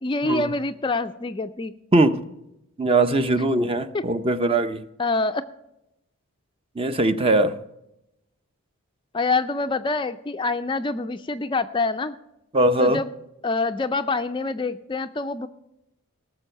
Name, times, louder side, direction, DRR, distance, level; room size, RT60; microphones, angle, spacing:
voice 1, 0.0-1.7 3.9-4.0 5.0-5.4 9.1-12.2 12.8-13.1 13.4-15.5, left 3 dB, 20° left, 10 dB, 0.4 m, -26 dB
voice 2, 2.8-4.8 6.8-7.6 12.5-13.0, right 2 dB, 25° right, 11 dB, 0.6 m, -20 dB
18.5 x 7.0 x 6.6 m, 0.86 s
head